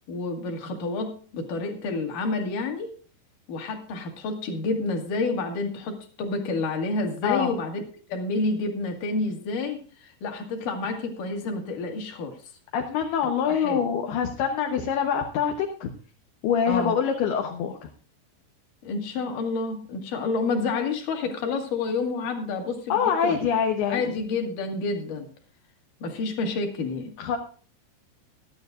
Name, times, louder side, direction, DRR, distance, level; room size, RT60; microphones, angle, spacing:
voice 1, 0.1-2.9 3.5-7.8 8.1-12.4 13.5-13.8 16.7-16.9 18.8-23.4 23.9-25.3 26.0-27.1, left 3 dB, 55° left, 4 dB, 3.2 m, -29 dB
voice 2, 7.2-7.6 12.7-15.9 16.4-17.9 22.9-24.0 27.2-27.4, left 7 dB, 70° left, 3 dB, 2.9 m, -25 dB
18.5 x 12.5 x 2.5 m, 0.41 s
omnidirectional pair, 5.1 m